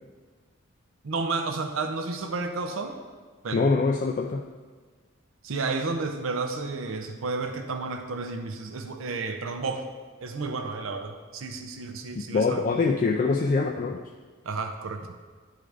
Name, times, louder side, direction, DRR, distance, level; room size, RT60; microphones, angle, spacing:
voice 1, 1.0-3.0 3.4-3.6 5.4-9.9 10.2-12.6 14.4-15.1, right 3 dB, 80° right, 6 dB, 0.6 m, -31 dB
voice 2, 3.5-4.4 12.2-14.0, left 4 dB, 40° left, 2 dB, 0.3 m, -24 dB
10.5 x 3.7 x 3.3 m, 1.5 s
head